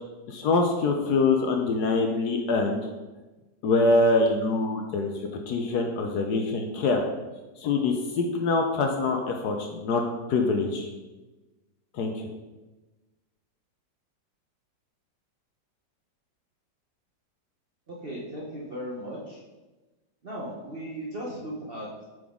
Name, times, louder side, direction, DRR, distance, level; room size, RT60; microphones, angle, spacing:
voice 1, 0.3-2.9 3.6-5.1 5.5-7.0 7.6-10.0 10.3-10.9 11.9-12.3, left 3 dB, 70° left, 3 dB, 1.1 m, -24 dB
voice 2, 17.9-19.4 20.2-22.0, equal, 45° right, -4 dB, 0.8 m, -37 dB
7.7 x 3.9 x 3.6 m, 1.1 s
omnidirectional pair, 2.0 m